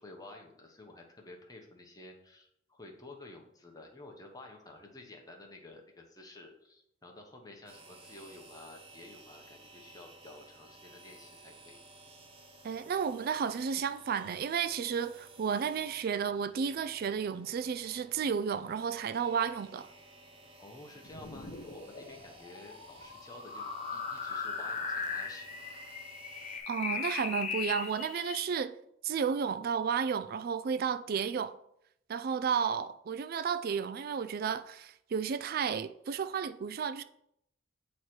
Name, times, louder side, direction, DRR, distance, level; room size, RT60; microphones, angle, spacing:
voice 1, 0.0-11.8 20.6-25.5, left 2 dB, 20° left, 1.0 m, -51 dB
sound 1, 7.7-26.6, right 2 dB, 30° right, 0.9 m, -56 dB
voice 2, 12.6-19.9 26.7-28.7 29.0-31.5 32.1-37.0, right 6 dB, 50° right, 0.3 m, -32 dB
sound 2, 21.0-28.5, left 5 dB, 40° left, 0.7 m, -39 dB
8.0 x 3.2 x 4.4 m
head